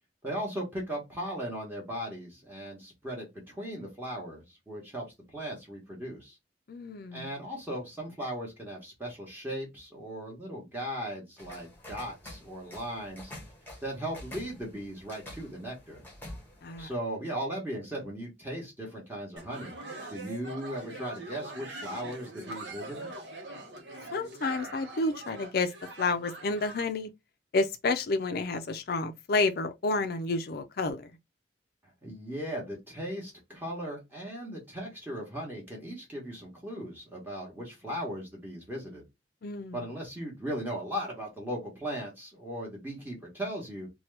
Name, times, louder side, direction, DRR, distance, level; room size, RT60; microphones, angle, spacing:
voice 1, 0.2-6.4 7.1-13.3 13.8-16.0 16.8-19.8 20.1-23.1 32.0-39.0 39.7-43.9, equal, 10° right, 1.0 m, -37 dB
voice 2, 6.7-7.3 16.6-16.9 24.1-25.7 26.0-27.1 27.5-31.1 39.4-39.9, left 3 dB, 55° left, 0.4 m, -30 dB
sound 1, 11.4-16.9, left 1 dB, 10° left, 0.9 m, -47 dB
sound 2, 19.4-26.9, right 2 dB, 75° right, 0.9 m, -43 dB
2.9 x 2.2 x 3.1 m
head